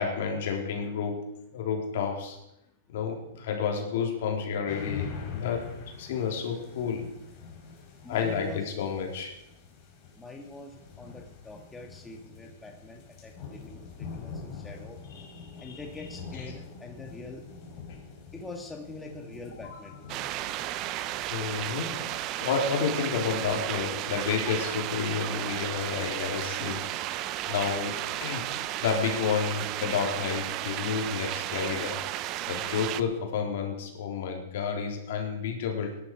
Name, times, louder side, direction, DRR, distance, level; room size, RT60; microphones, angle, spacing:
voice 1, 0.0-2.4 2.9-7.1 8.1-9.3 15.2-15.3 15.6-15.8 21.3-22.1 22.4-26.9 27.5-28.5 28.8-32.0 32.5-36.0, left 6 dB, 65° left, 2 dB, 3.6 m, -30 dB
sound 1, 4.7-22.5, left 5 dB, 40° left, 4.8 m, -44 dB
voice 2, 8.0-8.7 10.1-15.0 15.6-17.5 18.3-20.2, left 2 dB, 10° left, 2 dB, 1.7 m, -44 dB
sound 2, 20.1-33.0, right 14 dB, 40° right, 0.7 m, -33 dB
17.5 x 11.0 x 4.7 m, 0.83 s
hypercardioid pair, 135°, 0 cm